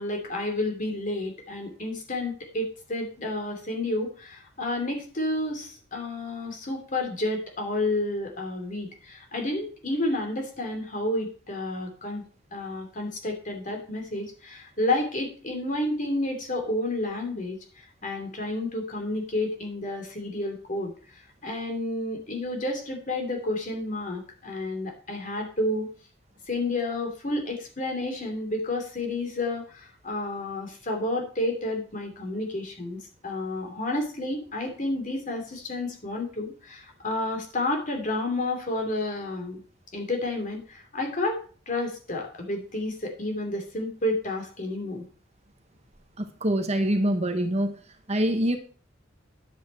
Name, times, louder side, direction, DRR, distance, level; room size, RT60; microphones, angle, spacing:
voice 1, 0.0-12.2 12.5-25.9 26.5-39.6 39.9-45.1, left 2 dB, 40° left, 3 dB, 2.8 m, -30 dB
voice 2, 46.2-47.7 48.1-48.6, right 1 dB, 35° right, 7 dB, 1.1 m, -25 dB
10.5 x 8.1 x 4.4 m, 0.41 s
head